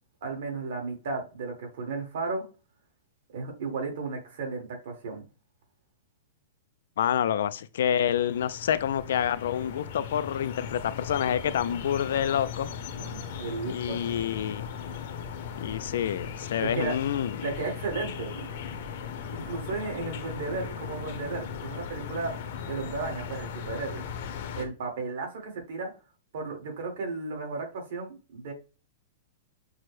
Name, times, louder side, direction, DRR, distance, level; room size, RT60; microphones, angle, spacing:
voice 1, 0.2-2.4 3.3-5.2 13.0-14.0 16.6-16.9 17.4-18.5 19.3-22.3 22.7-24.1 24.5-25.9 26.3-28.5, right 4 dB, 60° right, 1.8 m, -34 dB
voice 2, 7.0-12.7 13.7-14.7 15.6-17.3, left 9 dB, 70° left, 0.3 m, -28 dB
sound 1, 7.8-24.7, left 7 dB, 50° left, 0.7 m, -38 dB
6.0 x 2.1 x 3.2 m
supercardioid pair, 170°, 0 cm